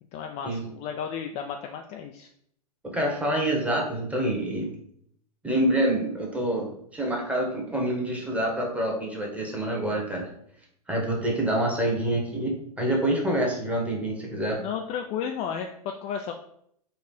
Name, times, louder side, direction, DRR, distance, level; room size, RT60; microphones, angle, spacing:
voice 1, 0.1-2.3 14.3-16.3, left 7 dB, 30° left, 4 dB, 0.4 m, -33 dB
voice 2, 2.8-4.7 5.4-10.3 10.9-14.6, right 1 dB, 5° right, -1 dB, 1.1 m, -27 dB
4.3 x 2.4 x 4.2 m, 0.69 s
figure-of-eight pair, 100°, 21 cm